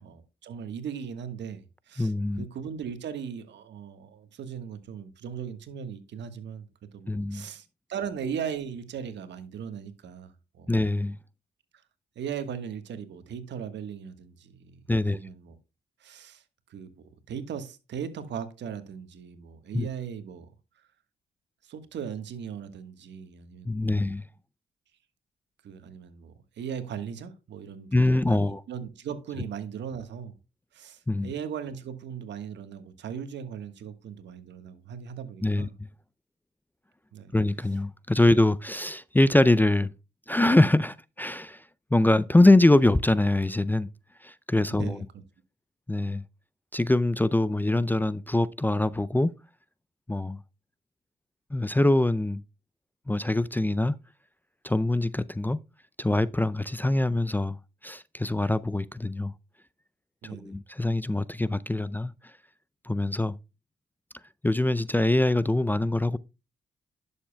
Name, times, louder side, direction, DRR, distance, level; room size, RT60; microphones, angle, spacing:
voice 1, 0.0-10.7 12.1-15.5 16.0-16.4 16.7-16.9 17.3-20.5 21.6-23.9 25.6-30.3 30.7-35.7 37.1-37.3 44.7-45.2 60.2-60.6, right 7 dB, 75° right, 1.4 m, -38 dB
voice 2, 2.0-2.5 7.1-7.5 10.7-11.2 14.9-15.2 19.7-19.9 23.7-24.2 27.9-28.6 31.1-31.3 35.4-35.7 37.3-39.9 40.3-41.6 41.9-43.9 44.2-45.1 45.9-46.2 46.7-49.3 50.1-50.4 51.5-52.4 53.1-53.9 54.6-55.6 56.0-57.6 57.8-59.3 60.3-62.1 62.8-63.4 64.4-66.2, left 2 dB, 10° left, 0.4 m, -23 dB
11.0 x 7.1 x 2.2 m
supercardioid pair, 55°, 19 cm